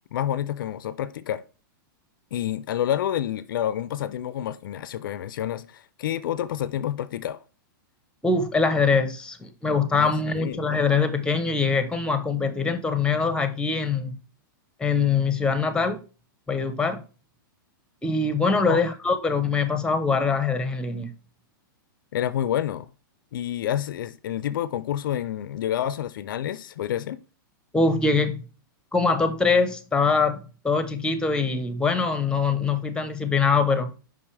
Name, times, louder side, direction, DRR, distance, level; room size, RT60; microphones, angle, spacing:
voice 1, 0.1-1.4 2.3-7.4 9.9-10.6 18.7-18.8 22.1-22.9 23.3-27.2, left 11 dB, 70° left, 0.4 m, -28 dB
voice 2, 8.2-14.2 14.8-16.0 16.5-17.0 18.0-21.1 27.7-28.4 28.9-33.9, left 4 dB, 5° left, 0.8 m, -23 dB
5.5 x 5.3 x 3.2 m
hypercardioid pair, 120°, 11 cm